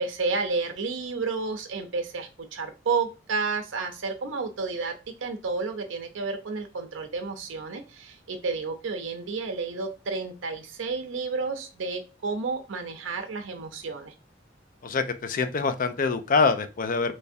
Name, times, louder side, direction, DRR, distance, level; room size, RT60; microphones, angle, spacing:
voice 1, 0.0-4.9 5.2-14.1, right 4 dB, 80° right, 5 dB, 0.5 m, -31 dB
voice 2, 14.8-17.2, left 4 dB, 45° left, 10 dB, 0.4 m, -25 dB
3.3 x 3.2 x 2.6 m, 0.31 s
head